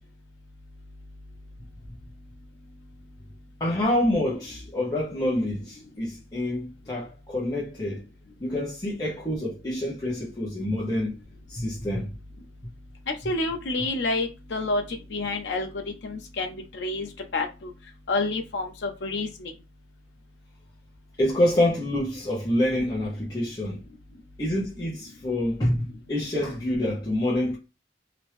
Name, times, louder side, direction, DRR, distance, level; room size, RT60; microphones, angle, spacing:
voice 1, 3.6-8.0 8.4-11.1 11.5-12.1 21.2-23.8 24.4-27.6, left 1 dB, 25° left, 0.8 m, -27 dB
voice 2, 13.1-15.7 16.0-17.7 18.1-19.5, left 2 dB, 85° left, 0.6 m, -29 dB
2.9 x 2.5 x 3.2 m
head